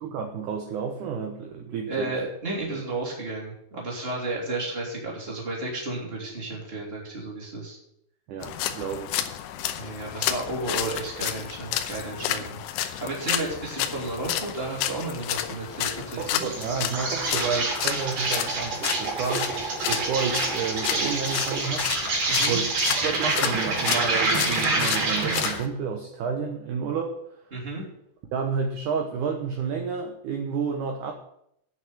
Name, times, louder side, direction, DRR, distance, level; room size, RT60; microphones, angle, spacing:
voice 1, 0.0-2.1 2.7-2.8 8.3-9.2 16.2-19.5 19.9-21.9 22.5-27.2 28.3-31.1, right 6 dB, 70° right, 3 dB, 2.0 m, -30 dB
voice 2, 1.9-7.8 9.8-16.5 22.3-22.6 27.5-27.8, right 2 dB, 15° right, -3 dB, 3.0 m, -33 dB
sound 1, 8.4-25.7, left 11 dB, 85° left, 2.8 m, -31 dB
Insect, 16.2-25.6, right 3 dB, 50° right, 4.5 m, -27 dB
9.5 x 6.5 x 8.7 m, 0.75 s
omnidirectional pair, 4.9 m